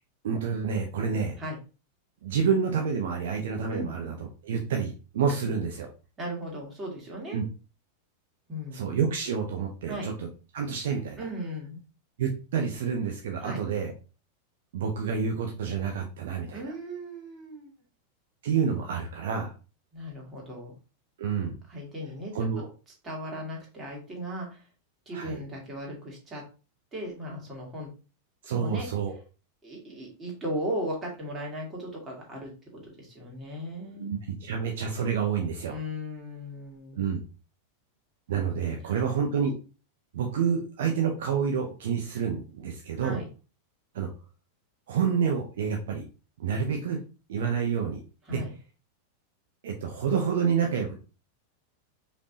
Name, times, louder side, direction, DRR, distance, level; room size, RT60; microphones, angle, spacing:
voice 1, 0.2-1.4 2.2-4.2 4.4-5.9 7.3-7.4 8.7-10.3 10.5-11.2 12.2-13.9 14.7-16.6 18.4-19.5 21.2-21.6 22.3-22.7 25.1-25.4 28.4-29.2 34.0-35.8 36.9-37.2 38.3-39.5 40.1-43.2 43.9-44.1 44.9-46.1 46.4-47.0 47.3-48.0 48.3-48.4 49.6-50.9, right 6 dB, 60° right, 2 dB, 0.6 m, -28 dB
voice 2, 6.2-7.4 8.5-8.8 9.9-10.1 11.2-11.8 13.4-13.6 16.5-17.7 19.9-20.8 21.7-22.3 23.0-24.6 25.1-26.4 26.9-27.9 28.5-28.9 29.6-34.2 35.7-37.1 38.8-39.1 43.0-43.3 48.3-48.5, equal, 20° right, -2 dB, 2.1 m, -37 dB
5.0 x 3.4 x 2.7 m, 0.34 s
figure-of-eight pair, 90°, 0 cm